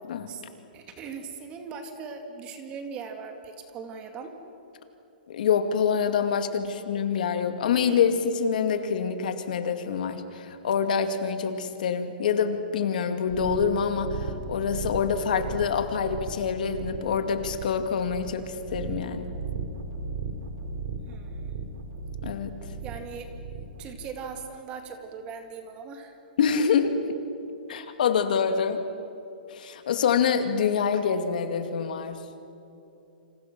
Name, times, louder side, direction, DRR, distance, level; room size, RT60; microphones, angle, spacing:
voice 1, 0.7-4.4 21.1-21.5 22.8-23.3 23.8-26.2, right 5 dB, 20° right, 5 dB, 2.2 m, -39 dB
voice 2, 5.3-19.3 22.2-22.6 26.4-27.2 27.7-28.8 29.5-32.2, left 6 dB, 60° left, 7 dB, 2.3 m, -26 dB
sound 1, 13.3-23.8, right 4 dB, 50° right, 3.5 m, -36 dB
29.0 x 27.5 x 6.1 m, 2.8 s
hypercardioid pair, 170°, 5 cm